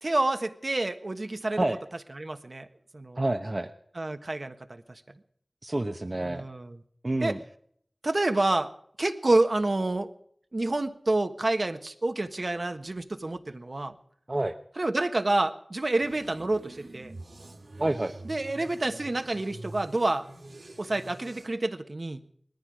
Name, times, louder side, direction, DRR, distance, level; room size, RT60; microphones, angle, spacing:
voice 1, 0.0-1.6 2.2-2.7 2.9-3.2 4.0-4.5 6.2-6.8 7.2-7.4 8.0-8.7 9.0-10.1 10.5-13.9 14.8-17.1 18.3-20.3 20.8-22.2, right 2 dB, 60° right, 8 dB, 1.4 m, -28 dB
voice 2, 3.2-3.7 5.6-6.4 7.0-7.4 14.3-14.5 17.8-18.2, right 2 dB, 45° right, 5 dB, 1.0 m, -28 dB
sound 1, 16.0-21.5, right 2 dB, 80° right, 3.0 m, -46 dB
20.0 x 14.5 x 5.0 m, 0.63 s
wide cardioid pair, 50°, 0 cm